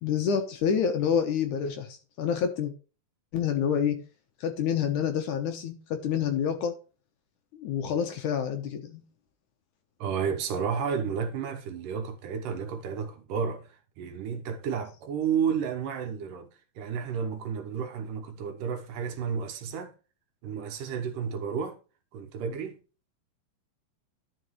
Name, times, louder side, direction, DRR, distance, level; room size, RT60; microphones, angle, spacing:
voice 1, 0.0-2.7 3.3-4.0 4.4-6.7 7.6-9.0, left 7 dB, 65° left, 2.3 m, -28 dB
voice 2, 10.0-16.5 16.8-19.9 20.4-21.8 22.1-22.8, right 7 dB, 70° right, 2.5 m, -32 dB
12.0 x 5.9 x 3.1 m
omnidirectional pair, 4.2 m